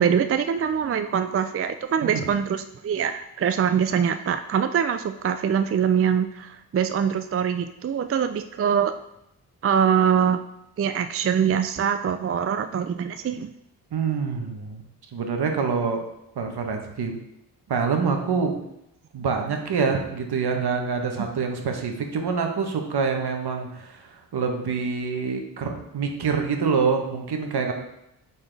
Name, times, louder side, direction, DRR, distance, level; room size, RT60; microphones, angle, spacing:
voice 1, 0.0-8.9 9.6-10.4 10.8-13.5 21.2-21.3, right 7 dB, 35° right, 9 dB, 0.4 m, -23 dB
voice 2, 13.9-14.8 15.1-16.0 16.4-17.2 17.7-18.6 19.1-27.7, right 5 dB, 65° right, 3 dB, 1.2 m, -26 dB
8.5 x 4.3 x 3.4 m, 0.82 s
cardioid pair, 50°, 42 cm